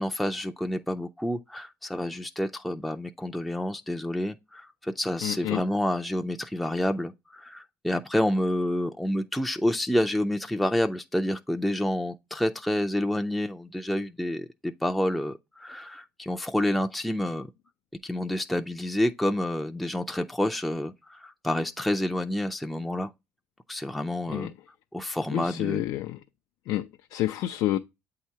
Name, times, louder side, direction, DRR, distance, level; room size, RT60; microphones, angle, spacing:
voice 1, 0.0-17.5 18.0-23.1 23.7-24.5 24.9-25.8, left 1 dB, ahead, 0.4 m, -28 dB
voice 2, 5.2-5.6 24.3-24.5 25.3-26.2 26.7-27.8, left 14 dB, 80° left, 0.4 m, -29 dB
8.1 x 2.8 x 4.5 m
cardioid pair, 125°, 6 cm